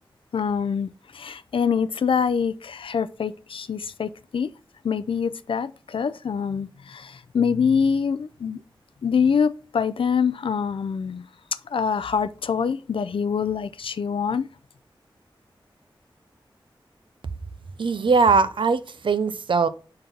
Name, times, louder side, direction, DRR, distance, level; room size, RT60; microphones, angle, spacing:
voice 1, 0.3-4.5 4.8-8.6 9.0-11.2 11.7-14.5, left 6 dB, 80° left, 0.4 m, -25 dB
voice 2, 17.8-19.7, right 4 dB, 70° right, 0.6 m, -20 dB
5.3 x 3.8 x 5.8 m
wide cardioid pair, 110°, 9 cm